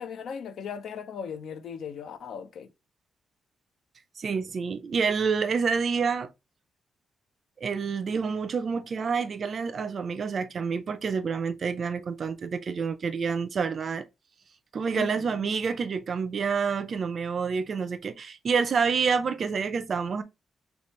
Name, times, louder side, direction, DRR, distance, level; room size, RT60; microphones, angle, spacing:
voice 1, 0.0-2.7 14.9-15.4, left 7 dB, 70° left, 0.5 m, -37 dB
voice 2, 4.2-6.3 7.6-14.0 14.7-20.2, right 5 dB, 45° right, 0.4 m, -28 dB
3.1 x 3.0 x 3.0 m
cardioid pair, 130°, 0 cm